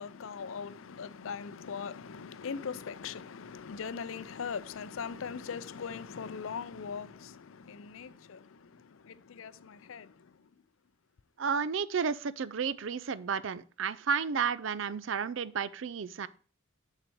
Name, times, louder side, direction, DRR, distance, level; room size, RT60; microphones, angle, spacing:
voice 1, 0.0-10.5, left 6 dB, 75° left, 0.5 m, -40 dB
voice 2, 11.4-16.3, right 6 dB, 65° right, 0.5 m, -32 dB
7.7 x 6.6 x 4.5 m
head